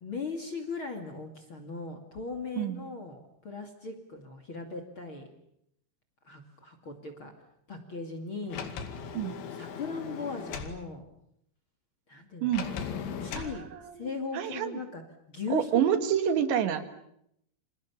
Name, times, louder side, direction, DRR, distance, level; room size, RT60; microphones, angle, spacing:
voice 1, 0.0-5.3 6.2-7.3 7.7-8.7 9.2-11.1 12.1-12.9 13.2-13.6 14.0-15.0 15.3-15.7, left 4 dB, 35° left, 7 dB, 2.5 m, -38 dB
Sliding door, 8.5-10.8 12.5-13.6, left 7 dB, 80° left, 4.7 m, -38 dB
voice 2, 13.4-14.8 15.5-16.8, right 9 dB, 75° right, 9 dB, 4.0 m, -28 dB
29.5 x 27.5 x 7.2 m, 0.75 s
omnidirectional pair, 5.3 m